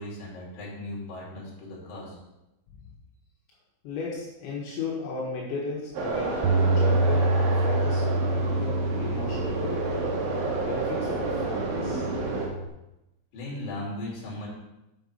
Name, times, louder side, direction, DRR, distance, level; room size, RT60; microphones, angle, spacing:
voice 1, 0.0-2.2 13.3-14.5, left 1 dB, 55° left, -5 dB, 4.2 m, -37 dB
voice 2, 3.8-9.8 10.6-12.1, left 3 dB, 80° left, -5 dB, 3.7 m, -35 dB
sound 1, 5.9-12.5, right 3 dB, 65° right, 2.7 m, -30 dB
Bass guitar, 6.4-12.7, right 2 dB, 90° right, 3.1 m, -27 dB
7.9 x 6.1 x 5.4 m, 0.93 s
omnidirectional pair, 5.3 m